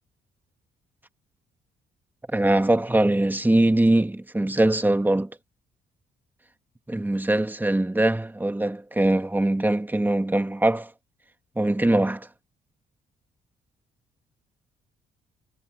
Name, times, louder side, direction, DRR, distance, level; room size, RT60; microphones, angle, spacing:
voice 1, 2.3-5.3 6.9-10.9 11.5-12.3, right 1 dB, 10° right, 1.8 m, -22 dB
cardioid pair, 90°, 20 cm